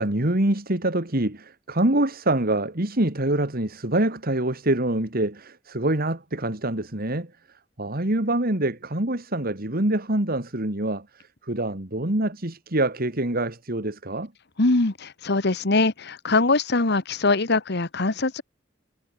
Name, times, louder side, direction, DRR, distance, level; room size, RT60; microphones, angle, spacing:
voice 1, 0.0-7.3 7.8-14.3, right 1 dB, 50° right, 2.8 m, -25 dB
voice 2, 14.6-18.4, left 3 dB, 60° left, 1.5 m, -22 dB
head